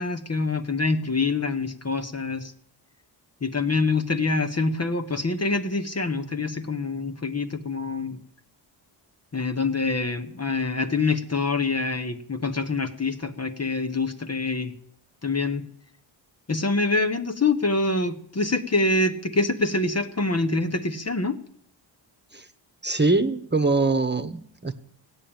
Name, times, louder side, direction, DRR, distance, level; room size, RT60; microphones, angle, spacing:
voice 1, 0.0-2.5 3.4-8.2 9.3-14.7 15.2-15.6 16.5-21.4, left 3 dB, 30° left, 7 dB, 1.2 m, -25 dB
voice 2, 22.8-24.7, right 3 dB, 20° right, 10 dB, 1.3 m, -23 dB
16.0 x 8.9 x 8.9 m, 0.69 s
cardioid pair, 65°, 48 cm